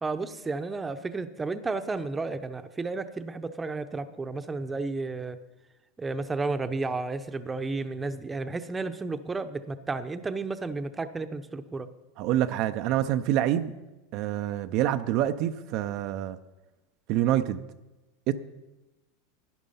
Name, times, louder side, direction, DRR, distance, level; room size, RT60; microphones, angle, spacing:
voice 1, 0.0-5.4 6.0-11.9, right 3 dB, 15° right, 10 dB, 0.8 m, -32 dB
voice 2, 12.2-13.7 14.1-16.4 17.1-17.6 18.3-18.4, right 12 dB, 55° right, 9 dB, 0.5 m, -26 dB
11.5 x 9.7 x 5.6 m, 1.0 s
hypercardioid pair, 110°, 0 cm